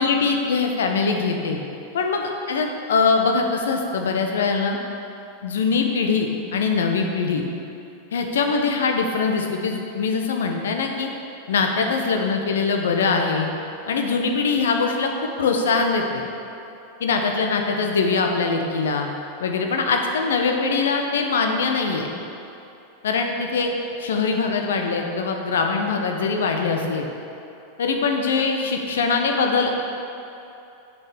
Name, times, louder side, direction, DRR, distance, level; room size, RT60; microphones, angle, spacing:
voice 1, 0.0-1.6 1.9-4.8 5.4-7.4 8.1-11.1 11.5-13.5 13.9-16.2 17.0-19.1 19.4-22.1 23.0-23.7 24.0-27.1 27.8-29.8, left 4 dB, 65° left, 3 dB, 1.0 m, -22 dB
7.8 x 6.2 x 6.9 m, 2.8 s
figure-of-eight pair, 90°, 0 cm